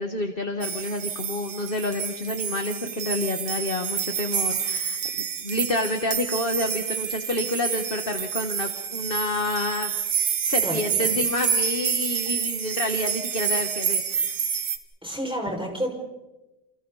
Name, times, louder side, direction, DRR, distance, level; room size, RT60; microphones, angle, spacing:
voice 1, 0.0-9.9 10.5-14.4, left 2 dB, 30° left, 5 dB, 1.6 m, -29 dB
sound 1, 0.6-14.8, right 7 dB, 60° right, 2.0 m, -28 dB
voice 2, 10.6-11.1 15.0-15.9, equal, ahead, -1 dB, 5.8 m, -30 dB
30.0 x 29.0 x 4.2 m, 1.0 s
omnidirectional pair, 2.2 m